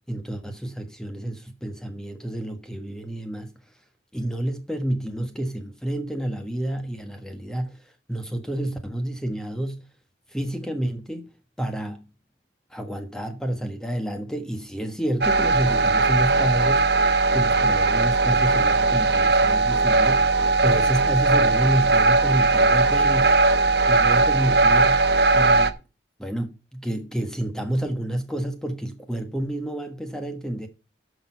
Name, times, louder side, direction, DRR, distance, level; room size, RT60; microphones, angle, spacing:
voice 1, 0.1-3.5 4.1-9.9 10.3-11.3 11.6-12.1 12.7-16.9 17.3-23.4 23.9-25.7 26.2-30.7, right 1 dB, 5° left, 1.3 m, -29 dB
sound 1, 15.2-25.7, right 3 dB, 60° right, 1.0 m, -19 dB
10.5 x 6.3 x 5.7 m
head